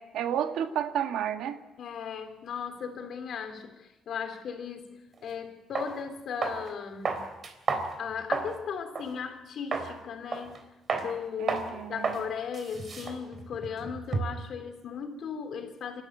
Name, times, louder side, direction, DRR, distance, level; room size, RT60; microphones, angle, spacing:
voice 1, 0.0-1.6 11.4-12.2, right 9 dB, 85° right, 7 dB, 1.8 m, -31 dB
voice 2, 1.8-7.3 8.0-10.6 10.9-16.0, left 7 dB, 60° left, 6 dB, 3.2 m, -37 dB
sound 1, 5.2-5.3 5.7-5.9 6.4-6.7 7.0-8.6 8.9-9.1 9.7-9.9 10.3-10.6 10.9-11.1 11.5-11.7 12.0-12.2 12.5-14.5, right 4 dB, 40° right, 3.5 m, -31 dB
27.0 x 13.0 x 9.4 m, 1.1 s
cardioid pair, 120°, 0 cm